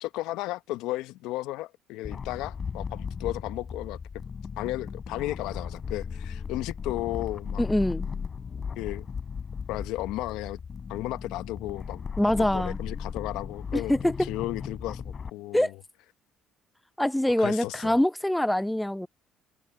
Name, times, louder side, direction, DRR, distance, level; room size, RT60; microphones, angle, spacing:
voice 1, 0.0-4.2 4.6-7.6 8.8-9.1 9.7-10.6 10.9-12.0 12.5-15.7 17.4-17.9, left 17 dB, 80° left, 0.9 m, -34 dB
sound 1, 2.0-15.3, left 6 dB, 40° left, 3.1 m, -36 dB
voice 2, 7.6-8.1 12.2-12.8 13.7-14.3 15.5-15.7 17.0-19.1, left 1 dB, 5° left, 0.6 m, -24 dB
supercardioid pair, 75°, 0 cm